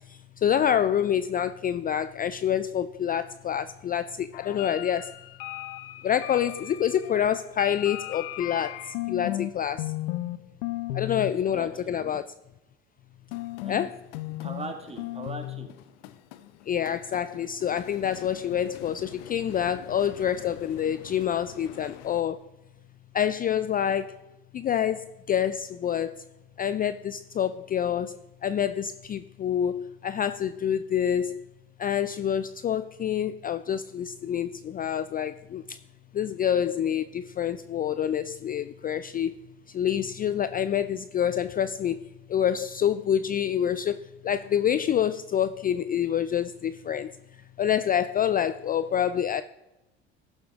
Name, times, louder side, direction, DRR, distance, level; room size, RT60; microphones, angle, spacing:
voice 1, 0.4-5.1 6.0-8.8 9.1-9.9 10.9-12.2 13.7-14.0 16.7-22.4 23.1-24.2 24.5-26.2 26.6-28.2 28.4-31.4 31.8-35.6 36.1-39.4 39.7-42.0 42.3-43.9 44.2-47.1 47.6-49.4, left 9 dB, 30° left, 0.4 m, -27 dB
sound 1, 4.3-9.5 9.8-10.4 10.6-11.3 13.3-22.2, left 16 dB, 80° left, 0.7 m, -37 dB
voice 2, 11.0-12.2 13.6-13.8 14.4-15.7, right 3 dB, 20° right, 1.9 m, -41 dB
13.0 x 7.3 x 3.6 m
hypercardioid pair, 75°, 29 cm